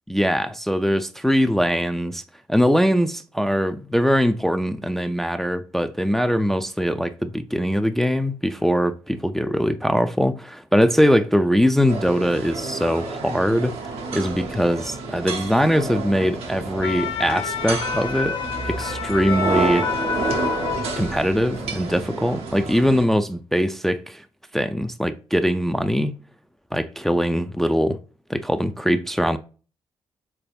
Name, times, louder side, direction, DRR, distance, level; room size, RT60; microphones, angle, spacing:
voice 1, 0.1-2.2 2.5-13.8 14.1-18.4 18.7-19.9 21.0-24.2 24.5-26.1 26.7-28.0 28.3-29.4, equal, 5° left, 0.3 m, -21 dB
sound 1, 11.9-23.0, right 3 dB, 75° right, 0.8 m, -30 dB
sound 2, 16.6-21.3 21.7-21.9, left 5 dB, 50° left, 0.6 m, -28 dB
3.9 x 3.5 x 2.3 m
supercardioid pair, 55°, 10 cm